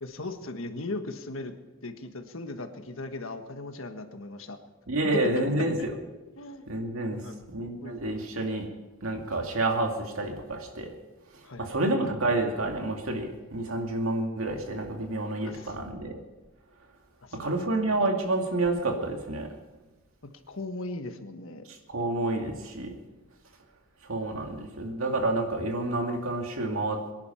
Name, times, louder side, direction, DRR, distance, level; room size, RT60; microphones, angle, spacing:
voice 1, 0.0-1.5 1.8-4.6 5.8-5.9 6.3-6.7 7.1-7.3 7.8-8.0 11.4-12.1 15.4-15.8 17.2-17.6 20.5-21.6, left 2 dB, 70° left, 7 dB, 1.5 m, -38 dB
voice 2, 4.9-5.9 6.7-7.2 7.5-8.7 9.0-10.9 11.6-16.2 17.3-19.5 21.9-22.9 24.1-27.0, right 2 dB, 80° right, 3 dB, 2.4 m, -29 dB
23.0 x 10.5 x 5.8 m, 1.2 s
head